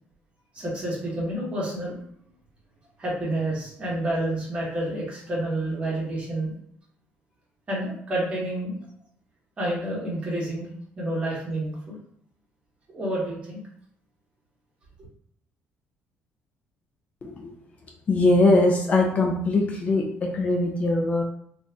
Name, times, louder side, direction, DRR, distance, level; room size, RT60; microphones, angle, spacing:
voice 1, 0.5-2.0 3.0-6.5 7.7-8.8 9.6-10.7 11.0-12.0 12.9-13.6, right 1 dB, 25° right, -5 dB, 1.3 m, -29 dB
voice 2, 17.2-17.5 18.1-21.2, left 2 dB, 35° left, 1 dB, 0.4 m, -21 dB
2.5 x 2.5 x 3.4 m, 0.68 s
cardioid pair, 135°, 4 cm